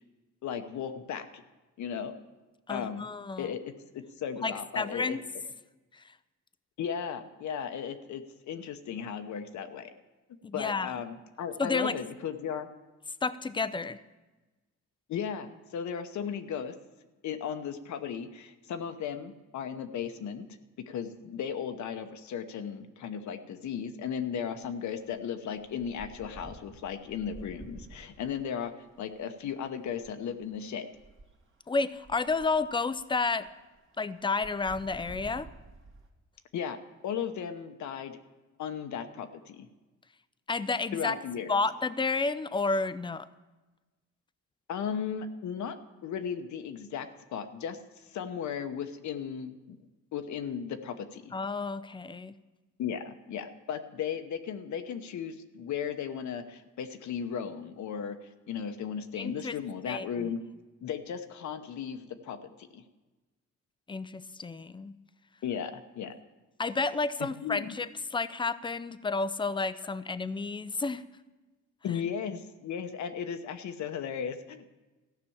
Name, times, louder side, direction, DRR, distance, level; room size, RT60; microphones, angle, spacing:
voice 1, 0.4-1.4 1.8-2.1 2.7-3.1 3.4-5.2 6.8-9.9 10.5-12.7 15.1-16.7 17.2-20.5 20.9-28.7 29.0-30.9 36.5-36.8 37.0-38.2 38.6-39.7 40.9-41.6 44.7-45.8 46.0-49.8 50.1-51.3 52.8-58.2 58.5-60.4 60.8-62.8 65.4-66.1 67.2-67.7 71.8-74.7, left 7 dB, 70° left, 8 dB, 1.0 m, -36 dB
voice 2, 2.7-3.5 4.4-5.2 5.9-6.0 10.4-10.9 11.6-12.0 13.2-14.0 31.7-33.5 34.0-35.5 40.5-41.1 41.5-43.3 51.3-52.3 59.2-59.5 59.9-60.3 63.9-64.9 66.6-71.0, left 4 dB, 15° left, 15 dB, 0.5 m, -31 dB
sound 1, 24.6-24.7 25.0-36.1, right 2 dB, 40° right, 2.1 m, -51 dB
14.0 x 6.0 x 8.6 m, 1.2 s
cardioid pair, 90°, 30 cm